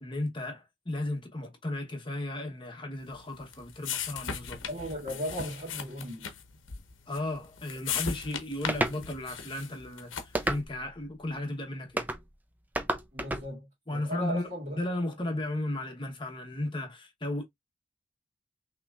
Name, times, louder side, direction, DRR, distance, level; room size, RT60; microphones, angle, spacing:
voice 1, 0.0-4.6 7.1-12.1 13.9-14.4 14.7-17.4, left 1 dB, 25° left, 1.1 m, -35 dB
sound 1, 3.1-10.5, left 7 dB, 85° left, 0.9 m, -38 dB
voice 2, 4.7-6.3 13.1-14.8 15.3-15.4, equal, 40° right, 2.3 m, -37 dB
sound 2, 8.7-9.0 10.3-10.9 12.0-12.2 12.7-13.5, right 1 dB, 10° right, 0.5 m, -30 dB
5.8 x 3.0 x 2.4 m
head